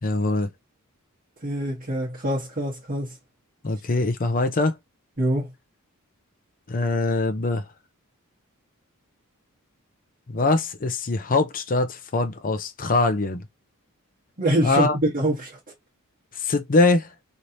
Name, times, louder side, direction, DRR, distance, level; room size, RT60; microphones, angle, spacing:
voice 1, 0.0-0.5 3.6-4.8 6.7-7.6 10.3-13.4 14.6-14.9 16.3-17.1, left 3 dB, 40° left, 0.6 m, -23 dB
voice 2, 1.4-3.1 5.2-5.5 14.4-15.6, right 1 dB, 40° right, 1.2 m, -25 dB
3.2 x 2.8 x 2.6 m
head